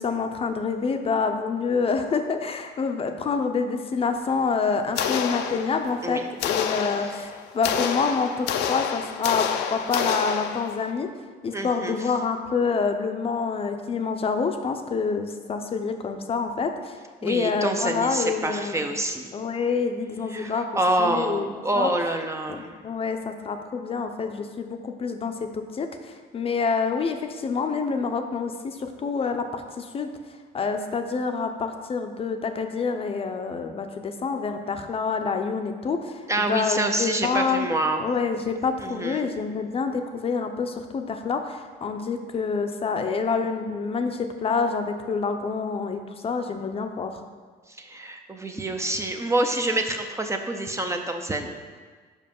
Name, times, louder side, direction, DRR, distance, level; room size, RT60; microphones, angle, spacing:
voice 1, 0.0-9.4 9.7-11.1 11.4-17.0 17.2-18.8 19.3-20.7 21.0-21.5 21.7-21.9 22.5-30.1 30.5-37.7 38.0-47.2, left 5 dB, 35° left, 6 dB, 0.6 m, -27 dB
sound 1, 5.0-6.0 6.4-10.9, left 8 dB, 85° left, 0.5 m, -28 dB
voice 2, 11.5-11.9 17.2-19.3 20.3-22.7 36.3-38.0 38.8-39.3 47.8-51.6, right 1 dB, 15° right, 5 dB, 0.5 m, -27 dB
5.4 x 5.0 x 5.3 m, 1.5 s
cardioid pair, 110°, 17 cm